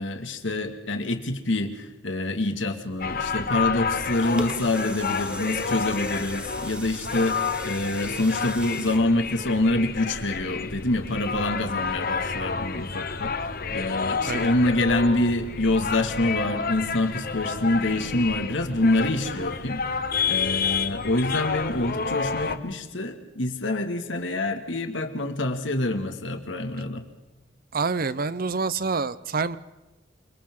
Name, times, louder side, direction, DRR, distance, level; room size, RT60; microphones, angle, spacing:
voice 1, 0.0-20.0 20.3-27.0, left 2 dB, 90° left, 6 dB, 2.1 m, -26 dB
sound 1, 3.0-22.6, left 5 dB, 50° left, 1.1 m, -30 dB
sound 2, 4.1-10.1 10.6-10.7, right 1 dB, 5° right, 1.0 m, -40 dB
voice 2, 27.7-29.6, right 4 dB, 50° right, 16 dB, 0.7 m, -27 dB
28.0 x 25.5 x 3.8 m, 1.0 s
head